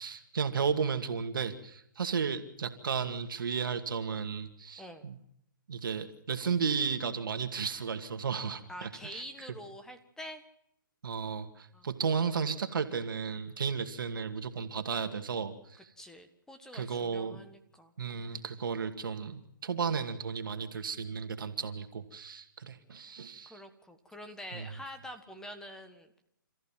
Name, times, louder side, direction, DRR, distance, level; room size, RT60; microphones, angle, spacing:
voice 1, 0.0-5.2 5.7-9.2 11.0-15.5 16.7-17.4 18.0-23.6 24.5-24.7, right 6 dB, 75° right, 7 dB, 2.3 m, -34 dB
voice 2, 8.7-10.4 11.7-11.9 16.0-18.4 23.4-26.2, equal, 5° left, 9 dB, 1.6 m, -46 dB
28.0 x 14.5 x 7.6 m, 0.78 s
hypercardioid pair, 140°, 11 cm